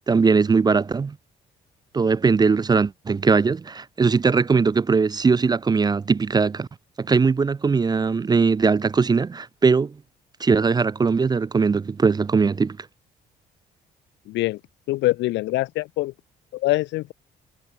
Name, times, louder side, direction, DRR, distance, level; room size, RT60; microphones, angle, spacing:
voice 1, 0.1-1.2 1.9-6.7 7.0-9.9 10.4-12.8, right 5 dB, 20° right, 0.4 m, -20 dB
voice 2, 14.3-14.6 14.9-16.1 16.5-17.1, left 18 dB, 75° left, 0.4 m, -24 dB
supercardioid pair, 80°, 19 cm